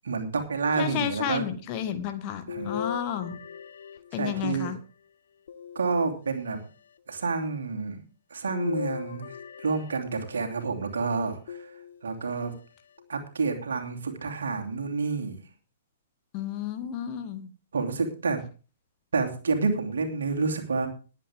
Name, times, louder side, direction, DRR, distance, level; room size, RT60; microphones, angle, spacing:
voice 1, 0.0-1.4 2.5-2.8 4.2-4.7 5.7-6.6 7.1-8.0 8.3-9.3 9.6-11.6 12.0-12.5 13.1-15.4 17.7-18.4 19.1-20.9, right 4 dB, 65° right, 4 dB, 2.9 m, -29 dB
voice 2, 0.8-3.4 4.1-4.8 16.3-17.5, left 9 dB, 35° left, 8 dB, 1.8 m, -31 dB
sound 1, 2.5-4.7 5.5-6.5 8.5-10.5 11.5-12.3 13.0-13.1 14.5-14.6, left 7 dB, 55° left, 0.8 m, -38 dB
20.5 x 8.5 x 3.7 m, 0.35 s
figure-of-eight pair, 115°, 0 cm